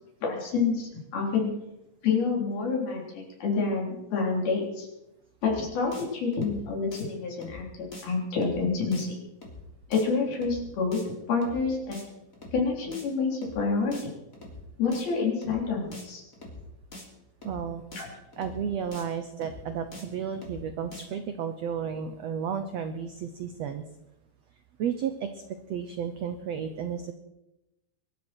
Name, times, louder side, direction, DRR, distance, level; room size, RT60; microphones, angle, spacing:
voice 1, 0.2-1.5 2.0-3.0 3.4-4.9 5.4-9.1 9.9-11.0 11.3-12.0 12.5-14.0 14.8-16.2 18.0-18.1, left 4 dB, 85° left, -1 dB, 5.7 m, -28 dB
sound 1, 5.4-5.6 5.9-6.0 6.3-6.6 6.9-7.0 7.4-7.6 7.9-8.0 8.3-8.6 8.9-9.0 9.4-9.6 9.9-10.0 10.3-10.6 10.9-11.0 11.4-11.6 11.9-12.0 12.3-12.6 12.9-13.0 13.4-13.6 13.9-14.0 14.3-14.6 14.9-15.0 15.4-15.6 15.9-16.0 16.3-16.6 16.9-17.0 17.4-17.6 17.9-18.0 18.3-18.6 18.9-19.0 19.4-19.6 19.9-20.0 20.3-20.6 20.9-21.0, left 2 dB, 25° left, 3.4 m, -44 dB
voice 2, 17.4-17.8 18.4-23.8 24.8-25.4 25.7-27.1, right 7 dB, 90° right, 8 dB, 1.4 m, -32 dB
23.5 x 12.5 x 4.5 m, 0.94 s
omnidirectional pair, 4.2 m